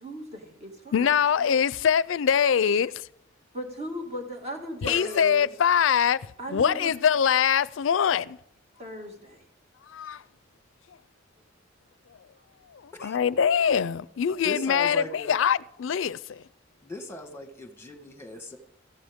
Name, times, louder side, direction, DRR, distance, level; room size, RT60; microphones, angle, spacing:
voice 1, 0.0-1.1 1.4-1.7 3.5-5.5 6.4-6.9 8.8-9.4, equal, 35° right, 2.1 m, -37 dB
voice 2, 0.9-3.1 4.8-8.4 9.9-10.2 12.7-16.4, left 7 dB, 80° left, 0.4 m, -23 dB
voice 3, 4.9-5.2 13.0-13.2 14.4-15.3 16.8-18.6, left 1 dB, 15° left, 1.4 m, -38 dB
16.5 x 14.0 x 3.6 m
head